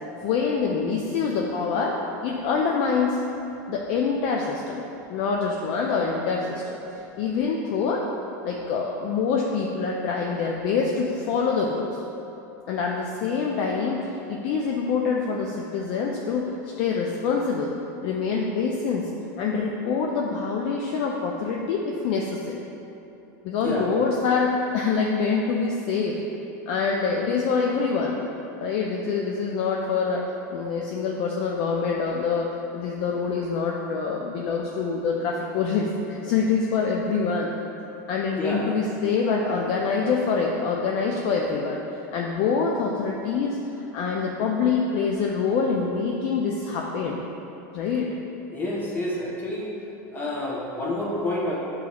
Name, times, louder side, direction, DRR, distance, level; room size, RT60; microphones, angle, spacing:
voice 1, 0.2-3.2 3.7-4.8 5.1-6.8 7.2-8.0 8.4-12.0 12.7-16.5 16.8-17.7 18.0-19.1 19.4-22.5 23.4-26.2 26.7-28.2 28.6-37.5 38.1-41.8 42.1-47.2 47.7-48.1, left 5 dB, 55° left, -1 dB, 0.4 m, -25 dB
voice 2, 48.5-49.8 50.1-51.5, left 1 dB, 20° left, -4 dB, 0.8 m, -28 dB
6.7 x 3.0 x 2.3 m, 2.9 s
supercardioid pair, 130°, 10 cm